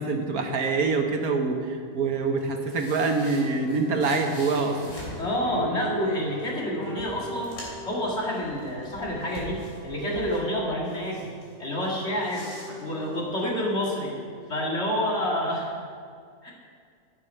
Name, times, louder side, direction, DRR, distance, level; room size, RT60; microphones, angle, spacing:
voice 1, 0.0-5.0, right 4 dB, 70° right, 4 dB, 1.5 m, -25 dB
sound 1, 2.4-5.3 6.4-6.5 6.8-7.9 8.3-10.4 10.8-11.5 11.8-13.4, left 1 dB, 90° left, 3.8 m, -44 dB
sound 2, 3.3-14.5, right 2 dB, 20° left, 2.3 m, -42 dB
voice 2, 5.2-7.6 7.8-11.3 11.6-12.5 12.8-14.2 14.5-15.7 16.4-16.5, left 1 dB, 45° left, -3 dB, 2.4 m, -28 dB
11.5 x 8.7 x 5.6 m, 2.1 s
omnidirectional pair, 1.7 m